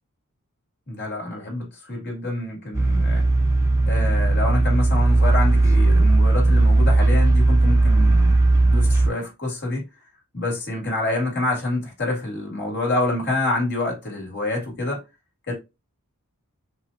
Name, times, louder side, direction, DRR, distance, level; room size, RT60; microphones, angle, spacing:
voice 1, 0.9-3.3 3.9-9.9 10.3-15.0 15.5-15.6, left 2 dB, 50° left, 2.4 m, -27 dB
sound 1, 2.7-9.1, right 2 dB, 15° right, 0.9 m, -17 dB
5.7 x 2.8 x 2.6 m
head